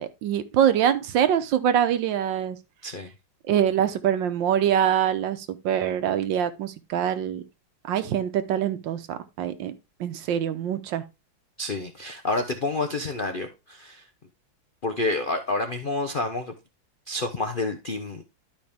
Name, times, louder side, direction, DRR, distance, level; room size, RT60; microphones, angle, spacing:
voice 1, 0.0-2.6 3.5-7.4 7.9-9.7 10.0-11.0, right 9 dB, 75° right, 1.5 m, -24 dB
voice 2, 11.6-14.0 14.8-16.5 17.1-18.2, left 2 dB, 85° left, 0.4 m, -29 dB
11.5 x 5.1 x 3.5 m
omnidirectional pair, 2.1 m